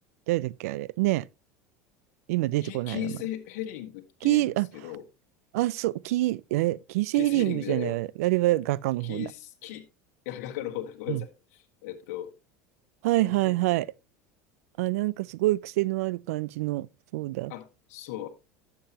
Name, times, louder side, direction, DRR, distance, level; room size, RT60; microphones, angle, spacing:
voice 1, 0.3-1.3 2.3-3.1 4.2-4.7 5.5-9.3 11.1-11.2 13.0-13.9 14.8-16.9 17.1-17.5, right 18 dB, 80° right, 0.4 m, -26 dB
voice 2, 2.6-5.0 7.1-8.0 9.0-9.8 10.2-12.3 13.2-13.5 17.5-18.3, left 13 dB, 75° left, 1.6 m, -37 dB
11.5 x 7.5 x 2.9 m
supercardioid pair, 105°, 8 cm